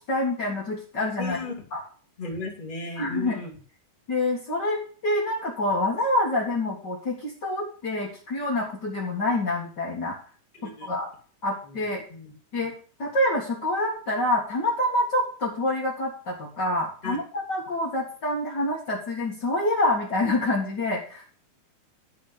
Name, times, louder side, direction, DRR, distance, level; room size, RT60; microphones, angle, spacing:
voice 1, 0.0-1.4 1.7-1.8 3.0-3.4 4.1-10.2 10.6-11.1 11.4-12.0 12.5-12.7 13.0-21.2, left 1 dB, 65° left, -4 dB, 1.0 m, -27 dB
voice 2, 1.2-1.5 2.2-3.5 10.6-10.9 11.7-11.8 12.1-12.3 17.0-17.2, left 3 dB, 20° left, -2 dB, 1.6 m, -35 dB
12.5 x 4.2 x 8.2 m, 0.42 s
omnidirectional pair, 5.1 m